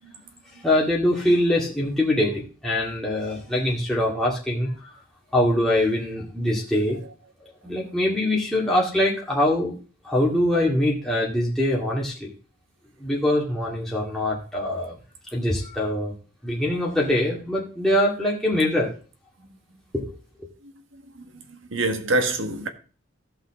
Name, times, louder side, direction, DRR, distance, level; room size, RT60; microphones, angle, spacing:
voice 1, 0.6-4.9 5.3-7.0 7.4-9.8 10.0-12.3 13.0-15.0 15.3-16.1 16.4-18.9 19.9-20.1 20.4-20.5, left 1 dB, ahead, 2.1 m, -23 dB
voice 2, 21.1-22.7, right 2 dB, 75° right, 1.5 m, -26 dB
16.0 x 5.7 x 3.7 m
head